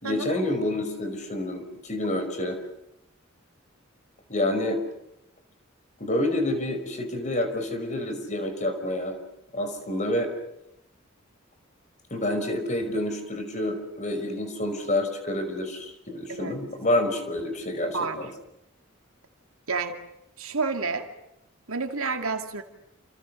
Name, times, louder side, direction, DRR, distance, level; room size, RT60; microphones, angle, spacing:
voice 1, 0.0-2.6 4.3-4.8 6.0-9.2 9.5-10.3 12.1-18.3, left 1 dB, 35° left, 7 dB, 5.4 m, -28 dB
voice 2, 19.7-20.0 20.4-21.1 21.7-22.6, right 4 dB, 80° right, 5 dB, 2.3 m, -29 dB
30.0 x 28.0 x 6.5 m, 0.86 s
head